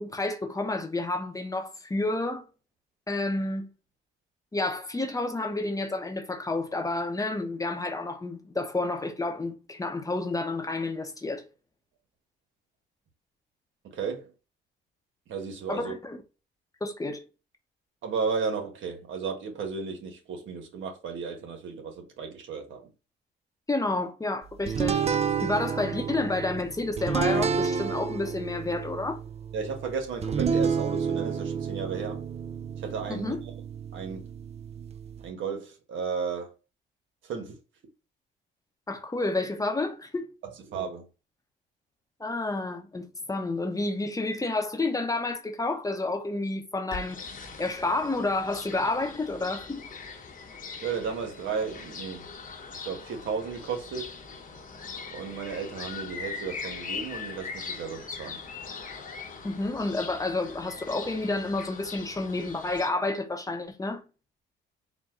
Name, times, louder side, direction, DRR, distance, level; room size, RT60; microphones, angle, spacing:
voice 1, 0.0-2.5 3.1-3.7 4.5-11.4 15.7-16.2 16.8-17.2 23.7-25.1 25.4-29.2 33.1-33.4 38.9-40.3 42.2-47.2 47.6-49.9 59.4-64.0, left 2 dB, 15° left, 0.8 m, -30 dB
voice 2, 13.8-14.3 15.3-15.9 18.0-22.9 29.5-32.2 32.8-33.3 33.9-34.2 35.2-36.5 37.2-37.6 40.4-41.0 50.8-52.3 52.7-54.2 55.1-58.4, right 5 dB, 75° right, 1.2 m, -34 dB
sound 1, 24.7-35.3, right 6 dB, 35° right, 0.4 m, -30 dB
sound 2, 46.9-62.9, left 5 dB, 45° left, 0.9 m, -41 dB
4.1 x 2.2 x 3.5 m
cardioid pair, 90°, 20 cm